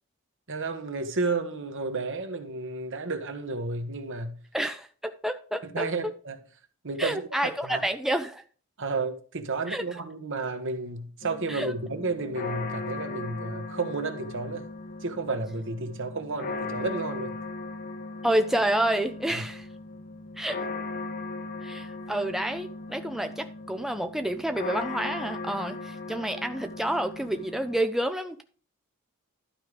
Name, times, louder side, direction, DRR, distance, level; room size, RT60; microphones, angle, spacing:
voice 1, 0.5-4.4 5.7-6.4 6.8-7.8 8.8-14.7 15.0-17.4 19.3-19.4, right 3 dB, 60° right, 1.3 m, -32 dB
voice 2, 4.5-5.9 7.0-8.4 9.7-9.8 11.5-11.7 18.2-19.7 20.4-20.7 21.6-28.4, right 1 dB, ahead, 0.4 m, -29 dB
sound 1, 11.2-27.8, left 3 dB, 40° left, 0.7 m, -38 dB
12.0 x 4.8 x 5.0 m
head